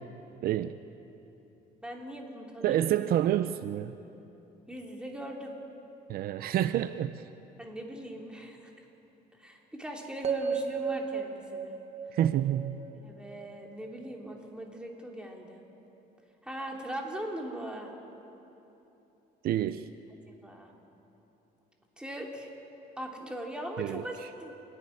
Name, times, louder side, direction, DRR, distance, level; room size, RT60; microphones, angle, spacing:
voice 1, 0.4-0.8 2.6-3.9 6.1-7.2 12.1-12.8 19.4-19.9 23.8-24.0, right 11 dB, 65° right, 13 dB, 0.6 m, -28 dB
voice 2, 1.8-3.1 4.7-5.5 7.6-8.7 9.4-11.8 13.0-15.6 16.4-17.9 20.3-20.7 22.0-22.5 23.0-24.5, right 1 dB, 5° right, 0 dB, 3.1 m, -40 dB
sound 1, 10.2-14.4, right 6 dB, 40° right, 1.4 m, -36 dB
28.5 x 11.0 x 9.9 m, 3.0 s
cardioid pair, 110°, 17 cm